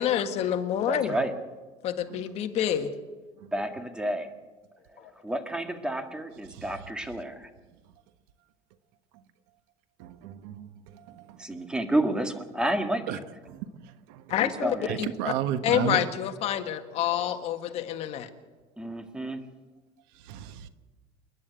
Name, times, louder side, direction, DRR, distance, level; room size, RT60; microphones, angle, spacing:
voice 1, 0.0-1.2 1.8-2.9 5.0-5.1 14.3-15.3 15.6-18.3, left 10 dB, 50° left, 1.7 m, -28 dB
voice 2, 0.9-1.3 3.5-4.3 4.9-7.5 11.4-13.2 14.6-15.0 18.8-19.4, right 1 dB, 5° right, 1.8 m, -30 dB
voice 3, 10.0-11.4 13.1-13.2 13.5-14.2 14.9-16.0 20.2-20.7, right 11 dB, 80° right, 1.4 m, -34 dB
28.5 x 11.0 x 8.2 m
cardioid pair, 145°, 14 cm